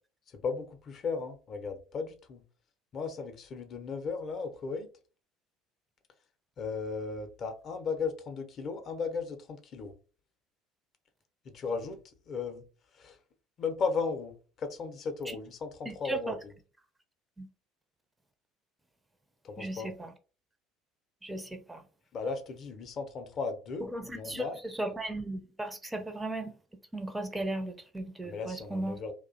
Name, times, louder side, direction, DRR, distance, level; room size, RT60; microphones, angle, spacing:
voice 1, 0.3-2.4 2.9-4.9 6.6-9.9 11.4-12.0 12.3-12.6 12.9-13.2 13.6-16.3 19.4-19.9 22.1-24.6 28.2-29.1, left 4 dB, 45° left, 0.5 m, -36 dB
voice 2, 15.9-16.4 17.4-17.5 19.6-20.1 21.2-21.8 23.8-26.6 26.9-29.0, right 1 dB, 10° right, 0.4 m, -36 dB
2.3 x 2.0 x 2.5 m
figure-of-eight pair, 60°, 0 cm